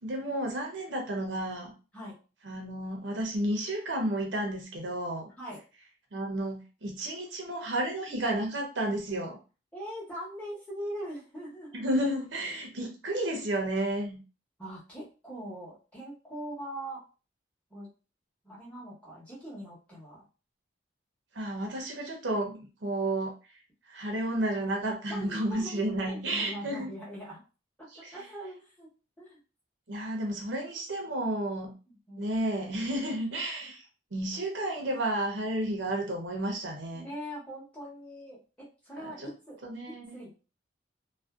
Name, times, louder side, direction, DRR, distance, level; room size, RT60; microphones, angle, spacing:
voice 1, 0.0-1.7 2.5-5.3 6.1-9.4 11.7-14.2 21.3-23.3 23.9-26.9 29.9-31.7 32.2-33.8 34.1-37.1 39.0-39.3 39.6-40.2, right 1 dB, 75° right, 2 dB, 0.7 m, -32 dB
voice 2, 9.7-11.8 14.6-17.0 17.7-17.9 18.4-20.2 25.1-27.4 27.8-28.9 29.2-29.4 31.9-32.3 36.9-39.6 39.9-40.3, equal, 5° left, -7 dB, 0.9 m, -42 dB
2.5 x 2.1 x 2.3 m, 0.34 s
head